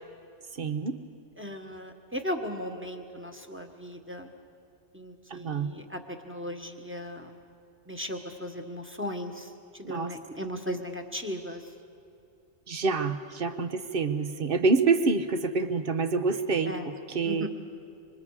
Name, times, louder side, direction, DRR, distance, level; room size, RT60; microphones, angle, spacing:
voice 1, 0.6-1.0 5.3-5.7 9.8-10.1 12.7-16.7 17.1-17.5, right 4 dB, 50° right, 9 dB, 1.2 m, -27 dB
voice 2, 1.4-4.3 4.9-7.4 7.9-9.5 9.8-11.6 16.7-16.9 17.2-17.5, equal, 10° right, 4 dB, 1.4 m, -37 dB
26.5 x 25.0 x 4.9 m, 2.5 s
omnidirectional pair, 1.2 m